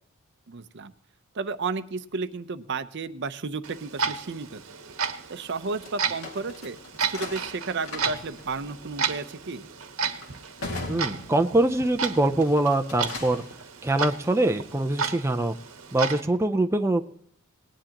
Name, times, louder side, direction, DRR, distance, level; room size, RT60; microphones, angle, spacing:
voice 1, 0.5-0.9 1.3-4.6 5.3-6.8 7.1-9.7, right 4 dB, 55° right, 11 dB, 0.7 m, -32 dB
Clock, 3.6-16.2, right 6 dB, 80° right, 1.1 m, -33 dB
sound 1, 5.8-11.9 12.3-13.5, left 2 dB, 80° left, 2.2 m, -40 dB
voice 2, 10.9-13.4 13.8-15.6 15.9-17.0, right 1 dB, 15° right, 5 dB, 0.5 m, -23 dB
19.0 x 10.0 x 2.9 m, 0.66 s
head